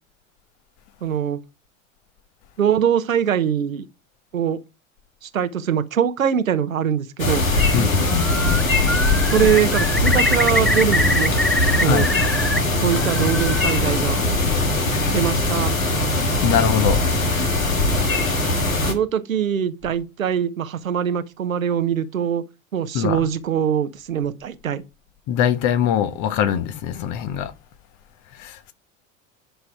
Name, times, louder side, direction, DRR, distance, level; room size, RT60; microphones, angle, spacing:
voice 1, 1.0-1.4 2.6-3.8 4.3-4.6 5.2-7.4 9.3-11.3 11.8-12.1 12.8-14.2 15.1-15.7 16.0-16.1 18.8-22.4 22.7-24.8, right 8 dB, 80° right, 1.0 m, -22 dB
sound 1, 7.2-18.9, left 2 dB, 85° left, 1.7 m, -20 dB
voice 2, 7.7-8.6 11.8-12.1 16.4-17.1 22.9-23.3 25.3-27.5 28.4-28.7, left 9 dB, 50° left, 1.4 m, -22 dB
Bird, 8.0-8.6 8.9-12.6 12.9-13.7, equal, ahead, 0.7 m, -24 dB
10.0 x 5.6 x 4.6 m
figure-of-eight pair, 75°, 40 cm